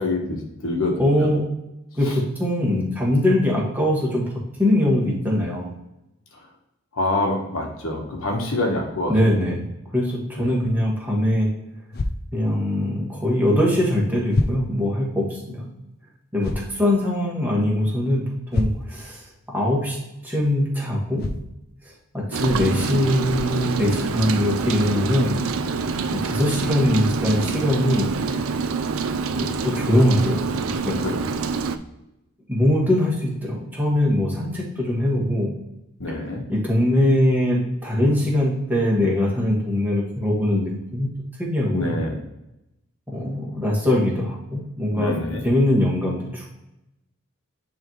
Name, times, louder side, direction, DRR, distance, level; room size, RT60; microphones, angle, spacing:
voice 1, 0.0-1.3 2.1-2.2 6.9-9.1 10.4-10.5 31.0-31.1 36.0-36.4 41.6-42.2 44.9-45.4, left 2 dB, 75° left, 0 dB, 1.3 m, -26 dB
voice 2, 1.0-1.4 1.9-4.2 4.6-5.7 9.1-9.6 9.9-11.5 12.3-15.7 16.3-20.0 20.2-21.3 22.1-25.4 26.1-28.1 29.3-31.0 32.5-35.5 36.5-41.1 41.4-41.9 43.1-46.5, left 1 dB, 10° right, -4 dB, 1.7 m, -22 dB
sound 1, 11.9-12.1 13.6-13.7 14.3-14.6 16.4-16.7 18.5-18.9 21.2-21.4 22.5-22.6 23.3-23.5, left 2 dB, 45° left, 0.4 m, -26 dB
Rain, 22.3-31.8, right 5 dB, 85° right, 0.5 m, -26 dB
9.9 x 3.5 x 3.1 m, 0.89 s
head